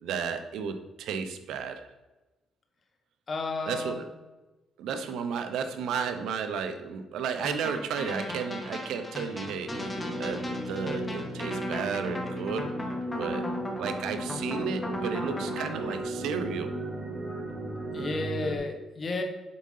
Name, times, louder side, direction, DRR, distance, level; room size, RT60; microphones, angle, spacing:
voice 1, 0.0-1.9 3.7-4.1 4.8-12.7 13.2-13.5 13.8-16.7, right 6 dB, 85° right, 8 dB, 0.8 m, -33 dB
voice 2, 3.3-4.0 17.9-19.2, left 3 dB, 45° left, 4 dB, 1.3 m, -32 dB
sound 1, 7.4-16.0, left 1 dB, 20° left, 1.3 m, -38 dB
sound 2, 9.7-18.6, right 1 dB, 20° right, 1.4 m, -35 dB
7.9 x 3.8 x 5.5 m, 1.1 s
cardioid pair, 90°, 0 cm